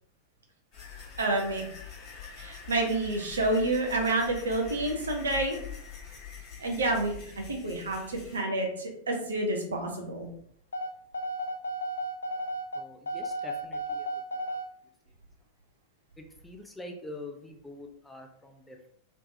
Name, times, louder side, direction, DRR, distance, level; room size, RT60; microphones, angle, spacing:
sound 1, 0.7-8.4, left 8 dB, 30° left, 1.2 m, -44 dB
voice 1, 1.2-1.6 2.4-5.6 6.6-7.2 7.5-10.3, right 2 dB, 70° right, 1 dB, 0.8 m, -29 dB
sound 2, 10.7-14.7, right 1 dB, 70° left, 0.4 m, -34 dB
voice 2, 12.7-14.1 14.5-14.6 16.2-18.9, left 2 dB, 5° left, 3 dB, 0.5 m, -45 dB
3.2 x 3.2 x 2.7 m, 0.67 s
figure-of-eight pair, 90°, 0 cm